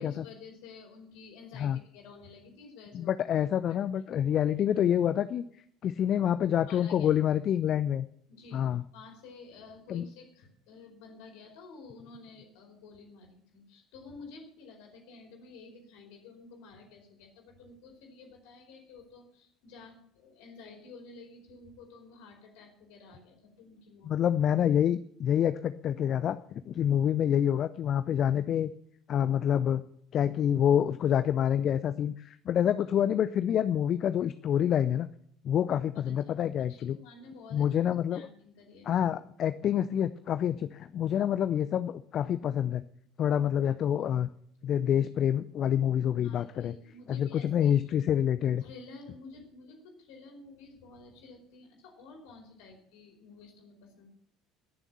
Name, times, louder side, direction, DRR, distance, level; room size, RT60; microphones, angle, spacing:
voice 1, 0.0-3.2 3.6-3.8 6.7-7.1 8.3-24.1 35.9-36.1 36.7-38.9 46.2-47.9 48.6-54.1, left 4 dB, 60° left, 2 dB, 4.7 m, -51 dB
voice 2, 2.9-5.4 5.8-8.1 8.5-8.8 9.9-10.1 24.1-26.4 26.7-28.7 29.1-29.8 30.1-35.1 35.4-37.0 37.5-38.2 38.9-42.8 43.2-44.3 44.6-46.7 47.1-48.6, left 9 dB, 40° left, 13 dB, 0.6 m, -27 dB
21.5 x 7.2 x 7.0 m, 0.66 s
figure-of-eight pair, 65°, 0 cm